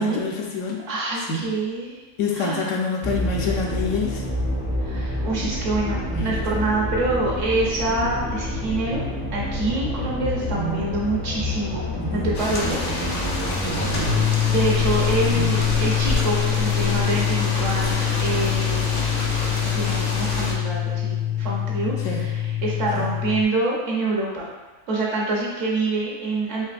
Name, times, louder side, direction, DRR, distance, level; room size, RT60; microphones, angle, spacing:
voice 1, 0.0-0.8 1.3-1.4 2.2-4.2 6.1-6.4 10.5-10.9 12.0-12.3 13.6-14.2 15.3-15.5 22.0-22.3 23.0-23.1, left 3 dB, 70° left, -1 dB, 0.9 m, -27 dB
voice 2, 0.9-2.0 2.3-2.8 4.8-9.1 9.3-11.9 12.1-13.3 14.4-19.0 19.7-24.5 24.9-26.6, right 2 dB, 65° right, -4 dB, 1.1 m, -26 dB
sound 1, 3.0-14.2, left 1 dB, 10° left, 0.5 m, -28 dB
sound 2, 12.3-20.5, left 1 dB, 50° left, 0.7 m, -28 dB
sound 3, 14.1-23.4, left 11 dB, 50° right, 0.5 m, -24 dB
4.2 x 3.0 x 2.5 m, 1.2 s
omnidirectional pair, 1.4 m